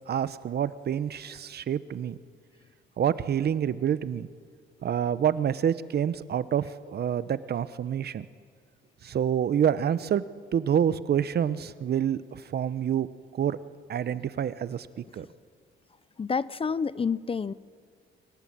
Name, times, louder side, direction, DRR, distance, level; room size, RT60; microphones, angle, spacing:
voice 1, 0.1-2.2 3.0-4.3 4.8-8.3 9.0-10.2 10.5-13.1 13.3-13.6 13.9-15.3, right 9 dB, 55° right, 15 dB, 0.9 m, -27 dB
voice 2, 16.2-17.5, left 5 dB, 30° left, 18 dB, 0.6 m, -28 dB
24.5 x 18.5 x 8.8 m, 2.1 s
cardioid pair, 90°, 20 cm